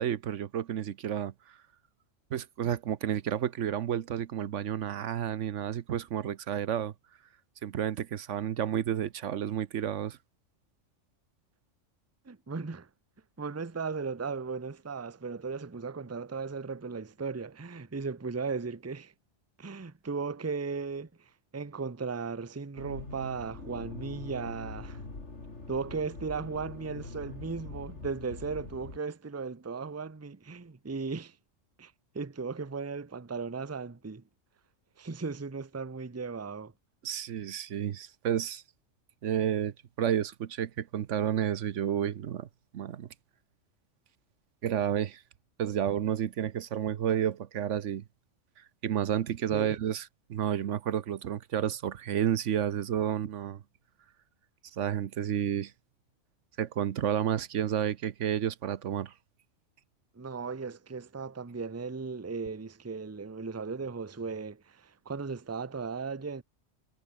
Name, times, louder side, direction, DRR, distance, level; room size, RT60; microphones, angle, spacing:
voice 1, 0.0-1.6 2.3-6.9 7.6-10.2 37.0-38.6 39.2-42.5 42.7-43.1 44.6-45.2 45.6-48.0 48.8-50.0 50.3-53.6 54.7-55.7 56.6-59.1, right 9 dB, 80° right, 1.2 m, -31 dB
voice 2, 12.2-12.9 13.4-19.1 19.6-25.0 25.7-31.4 31.8-34.2 35.0-36.7 49.5-49.8 60.1-66.4, right 4 dB, 15° right, 0.7 m, -36 dB
Accelerating revving vroom, 22.8-29.0, left 3 dB, 65° left, 3.7 m, -43 dB
omnidirectional pair, 1.3 m